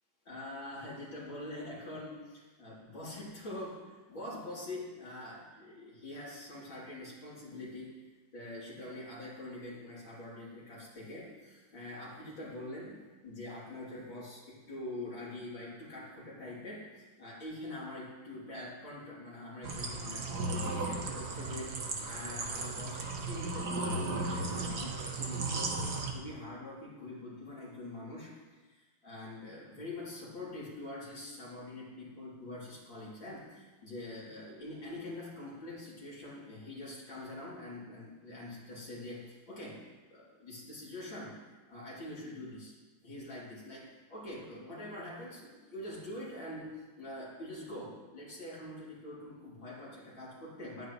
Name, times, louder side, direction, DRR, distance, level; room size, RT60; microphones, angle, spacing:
voice 1, 0.2-50.9, left 1 dB, 65° left, -7 dB, 4.2 m, -45 dB
sound 1, 19.6-26.1, right 3 dB, 55° right, 1.7 m, -35 dB
15.0 x 12.0 x 3.2 m, 1.3 s
omnidirectional pair, 2.2 m